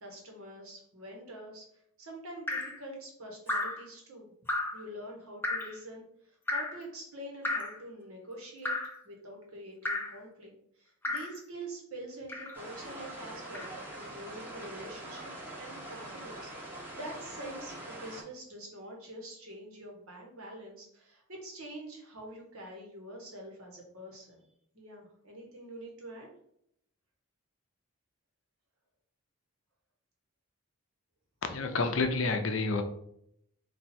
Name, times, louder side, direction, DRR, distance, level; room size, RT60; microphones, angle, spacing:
voice 1, 0.0-4.3 4.7-8.8 9.0-15.3 15.6-24.5 24.7-26.3, right 1 dB, 80° right, 0 dB, 1.4 m, -46 dB
Drip, 2.5-2.8 3.5-3.8 4.5-4.8 5.4-5.8 6.5-6.8 7.4-7.8 8.6-9.0 9.8-10.2 11.0-11.4 12.3-12.6 13.5-13.7, left 2 dB, 10° left, 0.6 m, -33 dB
sound 1, 12.5-18.2, right 1 dB, 10° right, 1.0 m, -44 dB
voice 2, 31.4-32.8, left 3 dB, 60° left, 7 dB, 0.6 m, -29 dB
4.4 x 2.7 x 4.2 m, 0.71 s
head